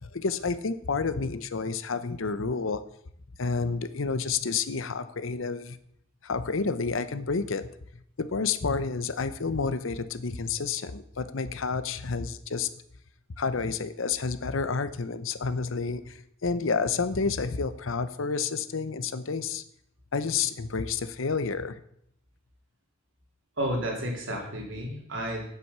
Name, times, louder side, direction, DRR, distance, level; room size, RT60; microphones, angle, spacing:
voice 1, 0.0-2.8 3.4-5.8 6.2-7.7 8.2-12.7 13.4-19.6 20.1-21.8, left 4 dB, 80° left, 13 dB, 0.8 m, -30 dB
voice 2, 23.6-25.4, right 1 dB, 70° right, 0 dB, 3.2 m, -31 dB
8.5 x 7.9 x 6.7 m, 0.72 s
head